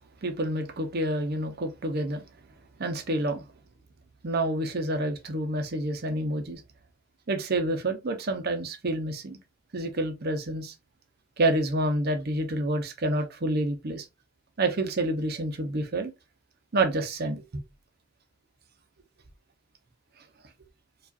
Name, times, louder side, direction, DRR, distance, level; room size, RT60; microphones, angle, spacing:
voice 1, 0.2-2.2 2.8-3.4 4.2-6.6 7.3-9.4 9.7-10.7 11.4-14.1 14.6-16.1 16.7-17.6, right 1 dB, 50° right, 0.7 m, -28 dB
4.7 x 2.4 x 2.5 m
head